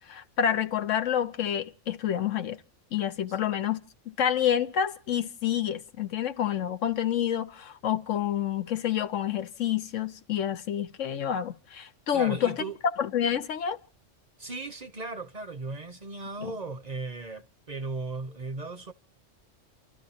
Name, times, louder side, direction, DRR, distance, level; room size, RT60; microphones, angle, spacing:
voice 1, 0.0-2.6 2.9-12.6 13.0-13.8 16.4-16.5, left 9 dB, 80° left, 1.2 m, -28 dB
voice 2, 12.1-12.8 14.4-18.9, right 3 dB, 40° right, 0.8 m, -36 dB
29.0 x 12.5 x 2.8 m
omnidirectional pair, 1.3 m